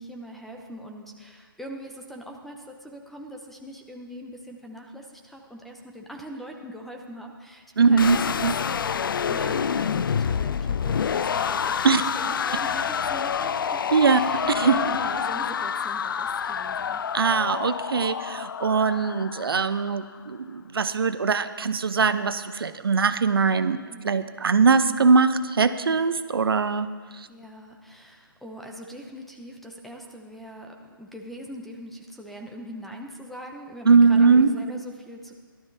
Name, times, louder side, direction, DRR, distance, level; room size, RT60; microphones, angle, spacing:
voice 1, 0.0-8.9 9.3-13.8 14.1-17.0 23.9-24.3 27.3-35.3, equal, ahead, 2 dB, 0.6 m, -41 dB
voice 2, 7.8-8.2 8.4-8.5 11.8-12.0 13.9-14.2 14.5-14.8 17.1-23.8 24.0-26.9 27.2-27.3 33.9-34.5, right 5 dB, 75° right, 11 dB, 0.7 m, -21 dB
sound 1, 8.0-20.0, left 7 dB, 65° left, 0.4 m, -27 dB
16.5 x 12.0 x 2.7 m, 1.5 s
hypercardioid pair, 150°, 12 cm